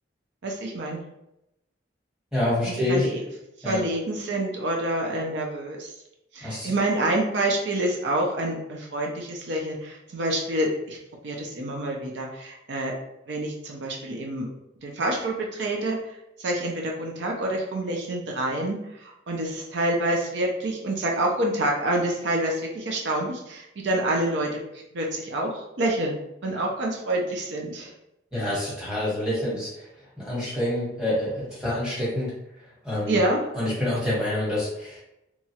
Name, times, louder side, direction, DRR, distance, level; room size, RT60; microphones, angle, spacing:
voice 1, 0.4-1.0 2.6-3.2 3.6-5.9 6.3-11.0 11.2-12.9 13.3-14.5 14.8-16.0 16.4-24.5 24.7-26.2 26.4-27.9 33.1-33.4, right 1 dB, 75° right, 0 dB, 0.5 m, -27 dB
voice 2, 2.3-3.1 3.6-3.8 6.4-6.7 28.3-29.8 30.2-32.3 32.8-33.2 33.5-35.0, left 1 dB, 5° right, -8 dB, 1.1 m, -27 dB
2.9 x 2.3 x 2.8 m, 0.85 s
head